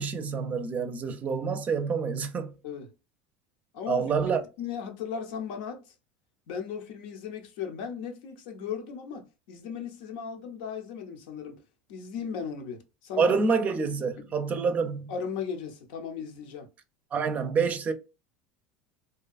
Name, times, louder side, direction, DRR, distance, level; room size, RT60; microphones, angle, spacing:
voice 1, 0.0-2.5 3.9-4.4 13.2-15.1 17.1-17.9, right 5 dB, 35° right, 0.5 m, -27 dB
voice 2, 3.7-4.1 4.6-5.9 6.5-11.6 11.9-13.4 14.3-14.4 15.1-16.7, left 7 dB, 75° left, 0.7 m, -36 dB
2.7 x 2.3 x 2.4 m
supercardioid pair, 100°, 5 cm